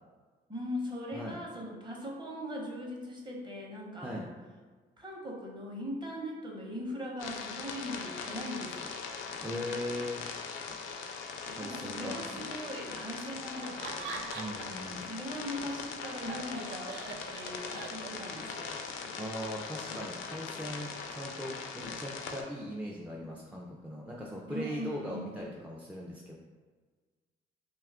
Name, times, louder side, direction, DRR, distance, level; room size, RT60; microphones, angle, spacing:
voice 1, 0.5-4.3 5.0-8.9 11.6-14.2 15.0-17.0 17.3-18.8 24.5-25.3, equal, 25° right, -2 dB, 0.8 m, -40 dB
sound 1, 7.2-22.4, left 5 dB, 80° left, 0.4 m, -40 dB
voice 2, 9.4-10.2 11.5-12.2 14.3-15.0 19.2-26.3, equal, 5° right, -3 dB, 0.3 m, -39 dB
Tap, 10.7-10.9 11.5-11.7 12.4-12.6 12.9-13.1 13.6-13.8 14.1-14.4 14.9-15.1 15.6-15.8 16.2-16.5 17.0-17.3 17.7-18.0 18.4-18.6 19.0-19.2 19.9-20.1 20.6-20.8 21.8-22.1 23.2-23.4 24.2-24.5 24.8-25.1 25.4-25.6, equal, 55° right, 0.8 m, -51 dB
Laughter, 13.6-14.9 15.2-18.4, right 5 dB, 75° right, 0.4 m, -43 dB
2.7 x 2.3 x 3.5 m, 1.4 s
cardioid pair, 90°, 20 cm